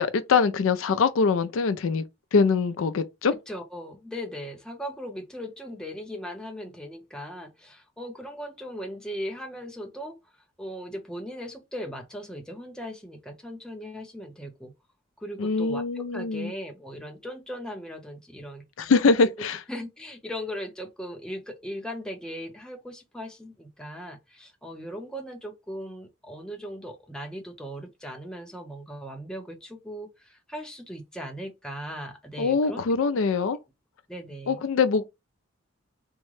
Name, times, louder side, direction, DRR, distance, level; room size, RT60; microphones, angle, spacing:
voice 1, 0.0-2.0 2.3-3.3 15.4-16.5 18.8-19.6 32.4-33.6 34.5-35.1, left 4 dB, 75° left, 0.4 m, -23 dB
voice 2, 3.5-10.2 10.6-14.7 15.2-18.7 19.7-32.8 34.1-34.6, equal, 5° left, 0.6 m, -38 dB
3.6 x 2.1 x 3.1 m
head